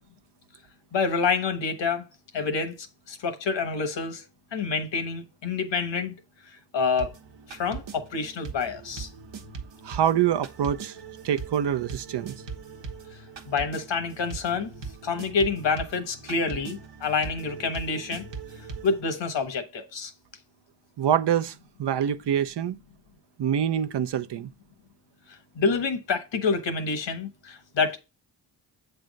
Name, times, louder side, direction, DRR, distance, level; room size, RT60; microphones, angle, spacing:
voice 1, 0.9-2.0 2.3-4.2 4.5-6.1 6.7-7.1 7.5-9.1 13.5-14.7 15.0-18.2 18.8-20.1 25.6-28.0, left 4 dB, 80° left, 1.3 m, -27 dB
sound 1, 7.0-19.0, right 5 dB, 85° right, 1.1 m, -41 dB
voice 2, 9.8-11.0 11.2-12.4 21.0-22.8 23.4-24.5, right 9 dB, 70° right, 0.7 m, -25 dB
7.7 x 3.5 x 5.2 m
cardioid pair, 55°, 43 cm